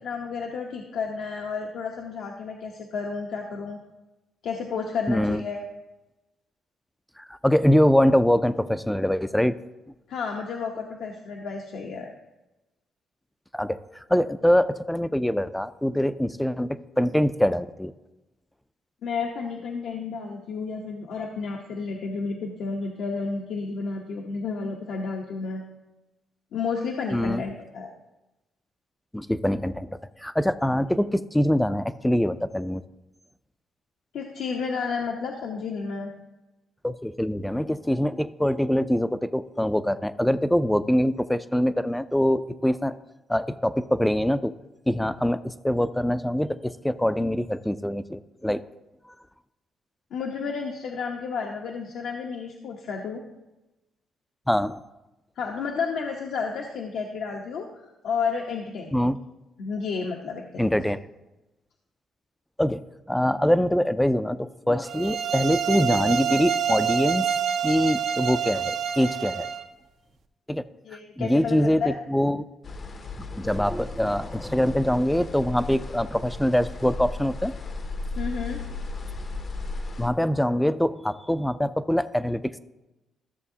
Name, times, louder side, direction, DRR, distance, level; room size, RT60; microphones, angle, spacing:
voice 1, 0.0-3.8 4.4-5.6 10.1-12.1 19.0-25.6 26.5-27.9 34.1-36.1 50.1-53.2 55.4-59.0 59.6-60.4 70.8-71.9 78.2-78.6, left 5 dB, 75° left, 1 dB, 0.9 m, -31 dB
voice 2, 5.1-5.4 7.2-9.5 13.5-17.9 27.1-27.4 29.1-32.8 36.8-42.9 43.3-44.5 44.9-48.6 49.1-49.2 54.5-54.8 58.9-59.2 60.6-61.0 62.6-62.8 63.1-67.3 67.6-69.5 70.5-70.6 71.2-72.4 73.2-77.5 80.0-82.6, equal, 5° left, 13 dB, 0.4 m, -24 dB
sound 1, 64.9-69.7, right 8 dB, 70° right, 0.7 m, -27 dB
sound 2, 72.6-80.1, left 3 dB, 40° left, 0.7 m, -35 dB
13.5 x 6.8 x 2.8 m, 1.0 s
cardioid pair, 90°, 0 cm